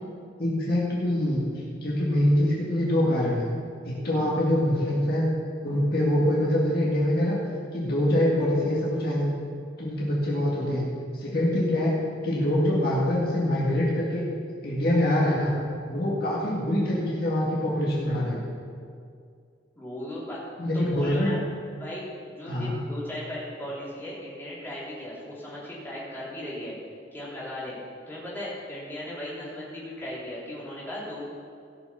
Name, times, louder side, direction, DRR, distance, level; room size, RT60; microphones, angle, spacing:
voice 1, 0.4-1.4 1.8-3.5 3.8-5.3 5.6-7.4 7.7-9.3 9.8-10.9 11.1-11.9 12.2-14.2 14.6-15.5 15.9-18.4 20.6-21.3 22.5-22.8, left 1 dB, 50° left, -6 dB, 2.0 m, -24 dB
voice 2, 19.8-20.4 20.7-21.4 21.8-26.7 27.1-27.8 28.1-31.3, left 1 dB, 10° left, -8 dB, 3.4 m, -37 dB
16.5 x 6.1 x 5.7 m, 2.3 s
head